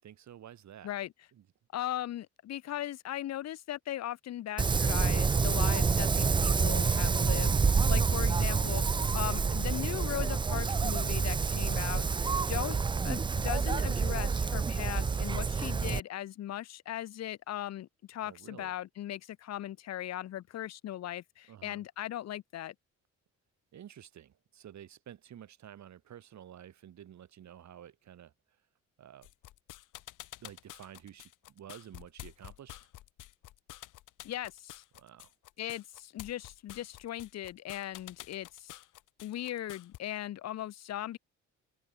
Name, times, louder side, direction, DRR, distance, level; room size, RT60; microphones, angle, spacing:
voice 1, 0.0-0.9 1.3-1.4 6.9-7.4 8.5-8.7 18.2-18.7 21.5-21.8 23.7-28.3 29.0-29.3 30.4-32.8 34.9-35.3, right 10 dB, 65° right, 6.8 m, -51 dB
voice 2, 1.7-7.5 7.9-12.8 13.0-22.7 34.2-34.8 35.6-38.8 39.2-41.2, left 12 dB, 60° left, 0.8 m, -38 dB
Wind, 4.6-16.0, right 5 dB, 15° right, 0.3 m, -28 dB
sound 1, 29.2-40.0, left 14 dB, 85° left, 6.5 m, -49 dB
open air
cardioid pair, 90°, 30 cm